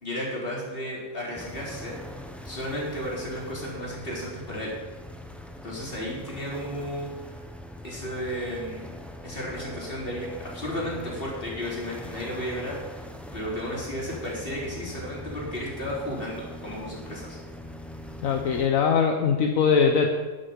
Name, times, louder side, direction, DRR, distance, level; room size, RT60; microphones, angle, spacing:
voice 1, 0.0-2.0 2.4-4.7 5.6-7.1 7.8-8.9 9.2-13.1 13.3-17.4, equal, 40° left, -5 dB, 3.9 m, -33 dB
sound 1, 1.3-18.7, left 1 dB, ahead, 0.7 m, -42 dB
voice 2, 18.2-20.1, left 6 dB, 75° left, 3 dB, 1.3 m, -21 dB
12.0 x 11.0 x 5.2 m, 1.3 s
omnidirectional pair, 1.5 m